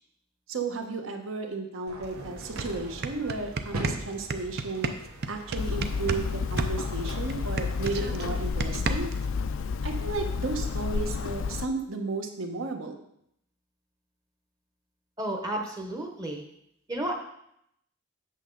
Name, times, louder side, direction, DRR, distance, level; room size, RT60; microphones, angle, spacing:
voice 1, 0.5-4.9 5.3-9.1 9.8-13.0, right 3 dB, 65° right, 4 dB, 1.1 m, -33 dB
sound 1, 1.9-7.9, right 1 dB, 85° right, 1.3 m, -41 dB
sound 2, 2.0-2.1 2.4-6.3 6.6-9.3, right 4 dB, 45° right, 0.5 m, -32 dB
Hammer, 5.6-11.7, left 5 dB, 65° left, 0.4 m, -31 dB
voice 2, 15.2-16.4 16.9-17.1, right 1 dB, 15° right, 1 dB, 0.9 m, -32 dB
8.4 x 6.6 x 3.9 m, 0.75 s
head